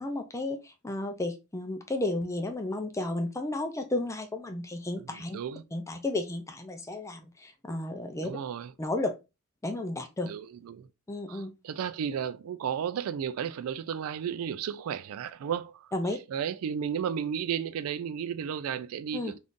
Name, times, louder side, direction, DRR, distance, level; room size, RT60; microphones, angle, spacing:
voice 1, 0.0-5.4 5.7-8.3 8.8-9.1 9.6-10.3 11.1-11.5 15.9-16.2 19.1-19.3, left 2 dB, 15° left, 0.4 m, -33 dB
voice 2, 5.1-5.6 8.2-8.7 10.2-10.9 11.3-15.9 16.3-19.4, right 8 dB, 75° right, 0.3 m, -33 dB
3.6 x 2.5 x 2.5 m
head